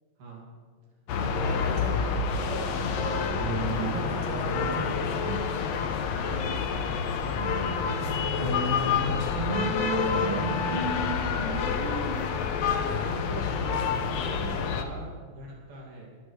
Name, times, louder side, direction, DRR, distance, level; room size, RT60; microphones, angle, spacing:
voice 1, 0.2-0.5 1.2-2.1 2.6-2.9 6.7-11.6 12.6-16.1, right 3 dB, 80° right, -3 dB, 4.3 m, -42 dB
sound 1, 1.1-14.8, left 6 dB, 85° left, 1.4 m, -28 dB
voice 2, 1.4-5.3 6.5-6.8 10.0-10.2, right 1 dB, 50° right, -4 dB, 4.3 m, -38 dB
sound 2, 3.4-6.6 6.9-12.1, right 1 dB, 15° right, 3.6 m, -34 dB
21.5 x 13.0 x 3.3 m, 1.5 s
omnidirectional pair, 4.2 m